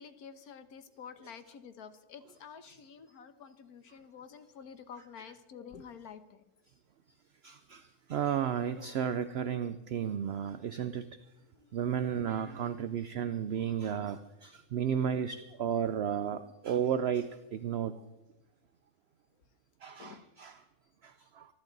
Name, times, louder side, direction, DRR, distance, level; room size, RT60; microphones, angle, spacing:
voice 1, 0.0-6.4 11.5-11.7 16.3-16.4 20.0-20.3, left 7 dB, 75° left, 11 dB, 1.5 m, -49 dB
voice 2, 7.4-11.0 11.7-18.0 19.8-20.6 21.0-21.5, right 8 dB, 60° right, 11 dB, 0.7 m, -33 dB
26.0 x 11.5 x 4.0 m, 1.0 s
omnidirectional pair, 1.6 m